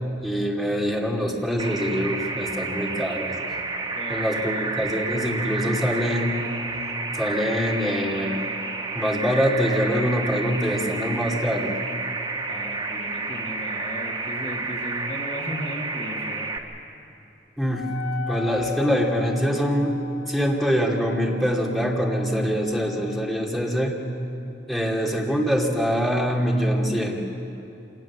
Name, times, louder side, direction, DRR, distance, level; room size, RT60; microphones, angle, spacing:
voice 1, 0.2-3.4 4.1-6.4 7.1-8.4 8.9-11.8 17.6-18.0 18.3-20.0 20.3-24.0 24.7-27.3, equal, ahead, -2 dB, 2.5 m, -24 dB
sound 1, 1.6-16.6, right 3 dB, 30° right, 1.6 m, -30 dB
voice 2, 3.9-4.7 12.5-16.6, left 1 dB, 35° left, 0 dB, 1.7 m, -36 dB
Wind instrument woodwind instrument, 17.7-23.4, left 9 dB, 85° left, 3.0 m, -39 dB
26.0 x 19.5 x 7.2 m, 2.8 s
head